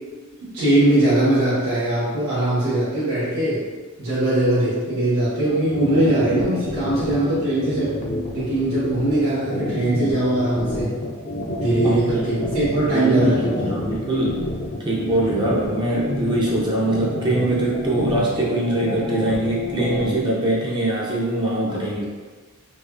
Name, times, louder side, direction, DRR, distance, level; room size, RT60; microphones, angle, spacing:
voice 1, 0.5-3.6 4.0-7.9 8.3-10.9 11.6-13.7 21.7-21.8, right 1 dB, 80° right, -13 dB, 1.5 m, -21 dB
sound 1, 5.5-20.2, left 1 dB, 35° left, 0.5 m, -29 dB
voice 2, 11.8-12.4 12.9-14.4 14.8-22.1, right 1 dB, 20° right, -5 dB, 0.5 m, -23 dB
4.0 x 2.9 x 2.5 m, 1.4 s
head